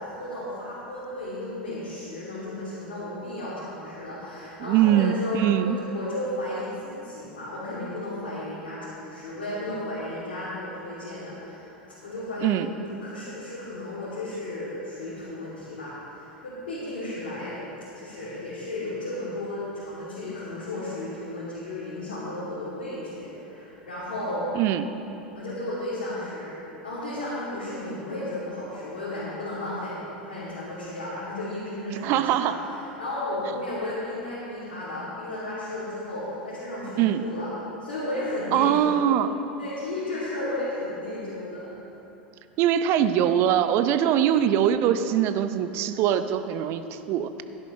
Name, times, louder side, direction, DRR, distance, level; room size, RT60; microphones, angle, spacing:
voice 1, 0.0-11.7 12.0-17.7 17.9-24.5 25.3-37.5 37.8-39.0 39.6-41.8, left 1 dB, 65° left, -11 dB, 2.9 m, -34 dB
voice 2, 4.6-5.8 12.4-12.7 24.5-24.8 31.9-32.5 37.0-37.2 38.5-39.3 42.6-47.3, right 10 dB, 45° right, 10 dB, 0.6 m, -22 dB
16.5 x 10.5 x 3.3 m, 3.0 s
figure-of-eight pair, 85°, 6 cm